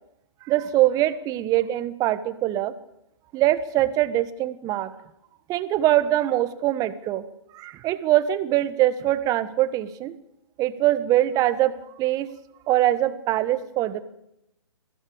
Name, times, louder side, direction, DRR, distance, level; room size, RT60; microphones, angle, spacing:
voice 1, 0.4-2.7 3.3-4.9 5.5-7.2 7.5-10.1 10.6-12.3 12.7-14.0, right 14 dB, 20° right, 15 dB, 1.3 m, -23 dB
21.5 x 16.0 x 8.8 m, 0.82 s
figure-of-eight pair, 130°, 16 cm